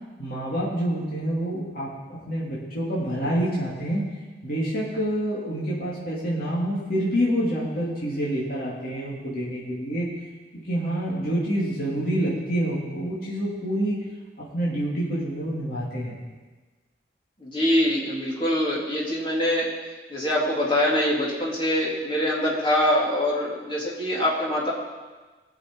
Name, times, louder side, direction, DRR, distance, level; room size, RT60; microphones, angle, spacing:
voice 1, 0.2-4.0 4.4-10.0 10.5-14.0 14.4-16.2, equal, 55° left, -7 dB, 3.1 m, -27 dB
voice 2, 17.4-19.7 20.1-24.7, left 1 dB, 30° left, -4 dB, 3.0 m, -24 dB
20.5 x 7.1 x 4.8 m, 1.3 s
head